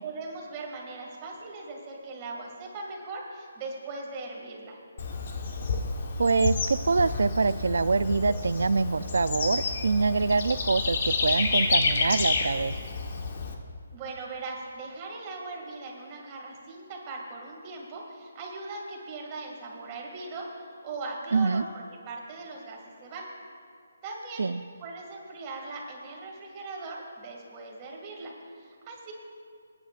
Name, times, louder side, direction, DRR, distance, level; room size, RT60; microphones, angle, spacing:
voice 1, 0.0-4.8 13.9-23.3 24.0-24.5 24.8-29.1, right 3 dB, 20° right, -2 dB, 2.3 m, -39 dB
Bird / Insect, 5.0-13.5, left 4 dB, 45° left, 1.2 m, -29 dB
voice 2, 6.2-12.7 21.3-21.7 24.4-24.6, right 4 dB, 75° right, 16 dB, 0.4 m, -25 dB
26.5 x 9.7 x 2.5 m, 2.3 s
hypercardioid pair, 165°, 0 cm